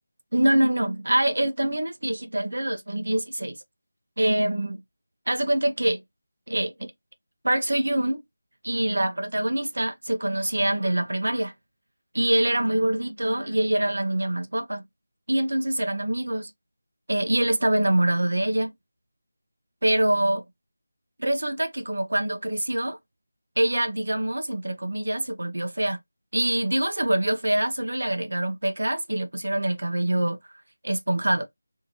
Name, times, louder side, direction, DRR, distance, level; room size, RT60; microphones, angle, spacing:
voice 1, 0.3-3.6 4.2-4.8 5.3-6.0 6.5-6.9 7.4-8.2 8.6-11.5 12.1-14.8 15.3-16.5 17.1-18.7 19.8-20.4 21.2-23.0 23.6-26.0 26.3-30.4 30.8-31.4, right 1 dB, 80° right, 0.7 m, -24 dB
2.7 x 2.6 x 2.8 m
figure-of-eight pair, 170°, 0 cm